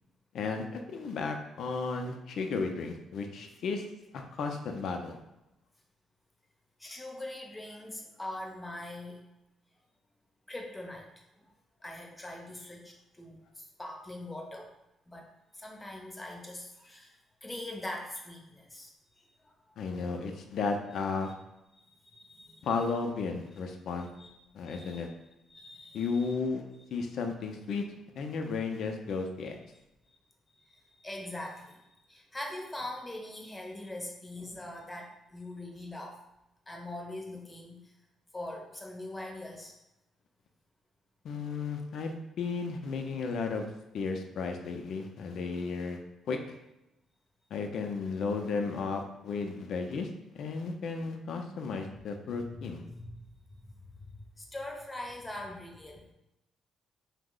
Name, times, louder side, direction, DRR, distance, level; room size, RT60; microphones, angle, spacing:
voice 1, 0.3-3.8 4.1-5.2 19.8-21.3 22.6-24.1 24.5-25.1 25.9-26.6 26.9-27.8 28.2-29.6 41.2-43.7 43.9-46.0 46.3-46.6 47.5-52.8, left 4 dB, 70° left, 4 dB, 0.4 m, -34 dB
voice 2, 6.8-9.2 10.5-11.1 11.4-11.5 11.8-14.7 15.1-18.9 19.2-19.5 21.8-22.7 24.2-24.3 24.6-25.1 25.5-26.3 30.6-36.2 36.7-37.9 38.3-39.7 52.3-53.2 53.6-56.1, left 1 dB, 15° left, 1 dB, 0.6 m, -43 dB
2.7 x 2.0 x 3.7 m, 0.91 s
cardioid pair, 90°, 0 cm